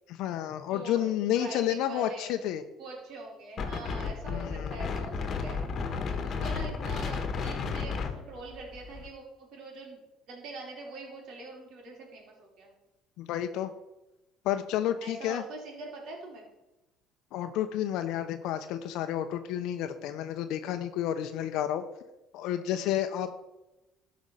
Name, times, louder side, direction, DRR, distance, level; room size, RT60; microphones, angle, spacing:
voice 1, 0.1-2.6 4.3-4.7 13.2-13.7 14.4-15.4 17.3-21.8 22.3-23.4, left 11 dB, 70° left, 8 dB, 0.7 m, -30 dB
voice 2, 0.7-2.3 2.8-10.0 10.3-12.8 15.0-16.5 20.4-20.6, right 2 dB, 60° right, -1 dB, 3.7 m, -44 dB
Wind, 3.6-9.1, left 5 dB, 40° left, 1.4 m, -33 dB
12.5 x 5.2 x 5.6 m, 1.0 s
cardioid pair, 120°, 0 cm